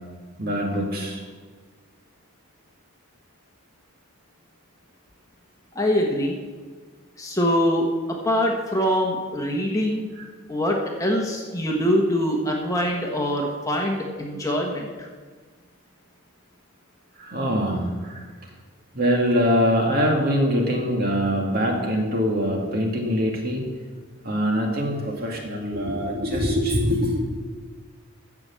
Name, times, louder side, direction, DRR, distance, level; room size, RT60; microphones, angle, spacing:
voice 1, 0.4-1.2 17.2-18.3 18.9-23.6 24.2-27.2, equal, 45° right, 0 dB, 2.3 m, -23 dB
voice 2, 5.7-6.4 7.2-10.1 10.5-15.1, equal, 15° left, 0 dB, 1.2 m, -24 dB
15.0 x 6.0 x 7.5 m, 1.5 s
head